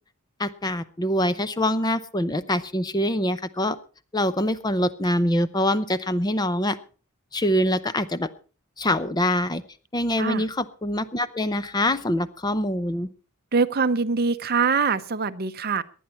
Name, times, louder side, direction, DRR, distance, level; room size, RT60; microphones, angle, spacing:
voice 1, 0.4-3.8 4.1-6.8 7.3-8.3 8.8-9.6 9.9-13.1, left 1 dB, 20° left, 14 dB, 0.6 m, -24 dB
voice 2, 13.5-15.8, right 5 dB, 45° right, 11 dB, 0.8 m, -23 dB
19.5 x 11.0 x 4.3 m, 0.37 s
head